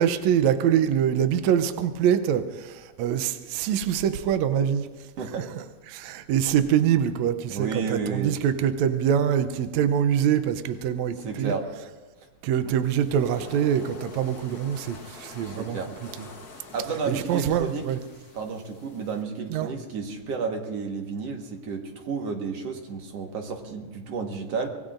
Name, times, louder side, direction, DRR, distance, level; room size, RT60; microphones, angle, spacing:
voice 1, 0.0-4.9 5.3-11.5 12.4-15.8 16.2-16.3 17.1-18.0 19.5-19.7, right 9 dB, 75° right, 10 dB, 2.0 m, -24 dB
voice 2, 7.5-8.4 11.2-11.7 15.4-15.9 16.7-17.9 18.3-24.7, right 5 dB, 60° right, 2 dB, 2.4 m, -31 dB
sound 1, 12.8-19.2, left 3 dB, 45° left, 1.4 m, -45 dB
25.5 x 20.0 x 2.6 m, 1.3 s
omnidirectional pair, 3.3 m